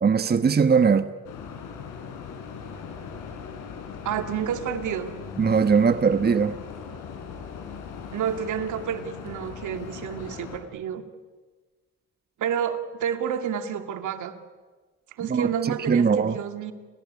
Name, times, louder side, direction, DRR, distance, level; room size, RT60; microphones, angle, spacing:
voice 1, 0.0-1.1 5.4-6.5 15.3-16.4, right 6 dB, 30° right, 11 dB, 1.2 m, -20 dB
sound 1, 1.2-10.6, left 6 dB, 90° left, 4.8 m, -39 dB
voice 2, 4.0-5.1 8.1-11.0 12.4-14.4 15.2-16.7, right 8 dB, 75° right, 8 dB, 2.4 m, -29 dB
30.0 x 19.0 x 9.7 m, 1.4 s
cardioid pair, 90°, 30 cm